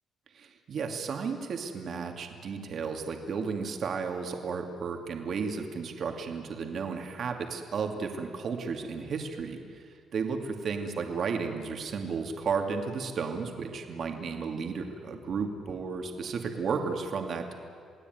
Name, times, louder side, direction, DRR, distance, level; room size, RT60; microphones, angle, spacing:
voice 1, 0.3-17.6, right 5 dB, 40° right, 4 dB, 2.5 m, -33 dB
28.5 x 19.5 x 9.4 m, 2.2 s
cardioid pair, 180°, 0 cm